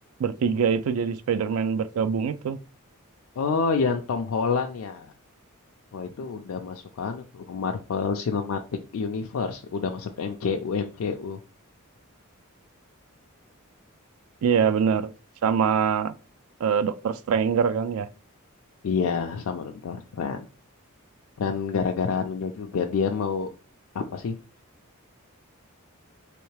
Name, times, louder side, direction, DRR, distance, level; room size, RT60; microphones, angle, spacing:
voice 1, 0.2-2.6 14.4-15.1 15.4-16.1 16.6-18.1, right 7 dB, 70° right, 0.3 m, -24 dB
voice 2, 3.4-5.1 5.9-8.6 8.9-11.4 18.8-20.4 21.4-23.5 23.9-24.3, left 5 dB, 70° left, 0.4 m, -28 dB
3.3 x 3.0 x 3.2 m
head